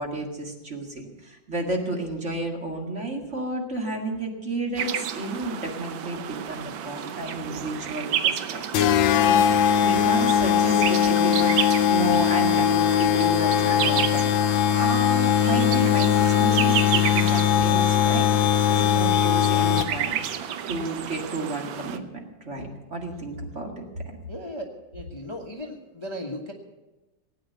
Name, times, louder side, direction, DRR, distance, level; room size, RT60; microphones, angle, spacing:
voice 1, 0.0-8.9 9.2-14.3 14.8-18.3 18.7-20.2 20.7-23.7, right 2 dB, 40° right, 1 dB, 2.3 m, -32 dB
sound 1, 4.8-22.0, right 9 dB, 85° right, 1.6 m, -31 dB
sound 2, 8.7-20.1, left 10 dB, 80° left, 1.4 m, -20 dB
voice 2, 24.3-24.7 24.9-26.5, equal, 20° left, 1 dB, 1.1 m, -36 dB
17.5 x 9.3 x 6.9 m, 1.1 s
omnidirectional pair, 2.1 m